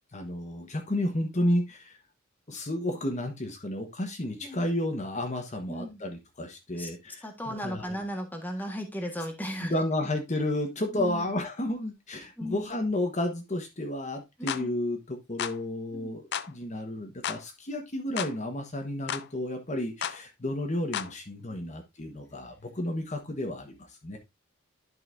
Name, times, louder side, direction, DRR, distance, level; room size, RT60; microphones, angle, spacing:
voice 1, 0.1-2.0 2.5-7.9 9.6-24.2, left 1 dB, 35° left, 4 dB, 1.3 m, -32 dB
voice 2, 5.7-6.0 6.7-6.9 7.2-9.7 10.9-11.3 12.4-12.7 14.4-14.7 15.9-16.2 21.5-21.7, equal, 10° left, 3 dB, 1.5 m, -36 dB
sound 1, 14.5-14.7 15.4-15.6 16.3-16.5 17.2-17.4 18.2-18.4 19.1-19.3 20.0-20.2 20.9-21.1, left 9 dB, 60° left, 0.5 m, -32 dB
11.0 x 5.6 x 2.6 m, 0.21 s
head